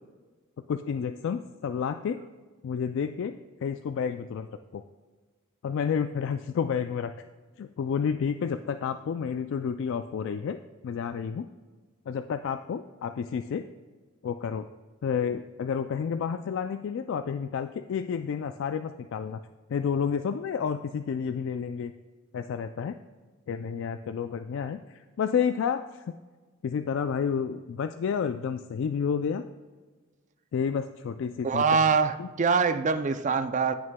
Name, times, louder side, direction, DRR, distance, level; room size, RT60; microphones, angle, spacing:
voice 1, 0.7-2.2 2.6-4.5 4.7-4.8 5.6-7.1 7.6-11.5 12.1-13.7 14.2-14.7 15.0-19.4 19.7-21.9 22.3-23.0 23.5-26.2 26.6-29.4 30.5-31.6 32.2-32.3, left 7 dB, 65° left, 9 dB, 0.3 m, -30 dB
voice 2, 31.4-33.7, right 5 dB, 35° right, 11 dB, 0.4 m, -24 dB
15.0 x 6.2 x 2.2 m, 1.4 s
head